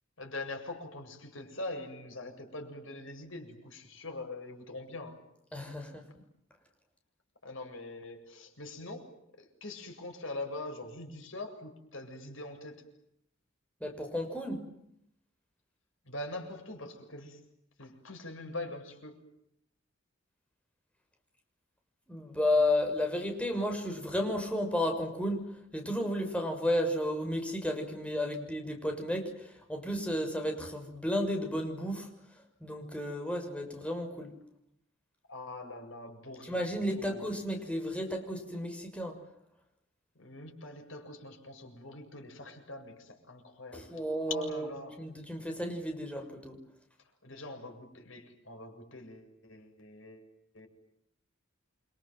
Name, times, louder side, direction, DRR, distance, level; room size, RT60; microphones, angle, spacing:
voice 1, 0.2-5.2 7.4-12.8 16.0-17.4 17.8-19.2 35.3-36.6 36.9-37.2 40.1-44.0 44.3-45.1 47.2-50.3 50.5-50.7, left 2 dB, 70° left, 4 dB, 7.7 m, -43 dB
voice 2, 5.5-6.0 13.8-14.7 22.1-25.4 25.7-32.1 32.6-34.3 36.5-39.2 43.7-44.7 45.0-46.6, left 1 dB, 5° left, 4 dB, 6.4 m, -32 dB
29.5 x 26.0 x 7.6 m, 0.76 s
head